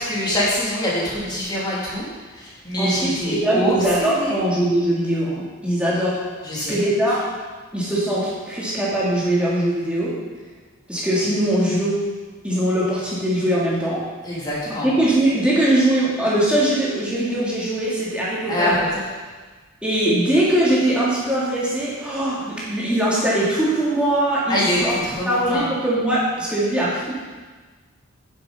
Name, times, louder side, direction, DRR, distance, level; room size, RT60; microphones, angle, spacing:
voice 1, 0.0-2.1 2.4-3.7 4.0-4.4 6.4-6.8 14.2-14.9 18.5-18.7 24.5-24.8 25.0-25.7, equal, 20° left, -7 dB, 3.2 m, -24 dB
voice 2, 2.8-6.2 6.6-7.2 7.7-10.1 10.9-12.0 12.4-14.0 14.8-18.8 19.8-24.9 25.2-27.2, right 1 dB, 5° right, -8 dB, 3.1 m, -21 dB
9.8 x 7.4 x 5.3 m, 1.4 s
head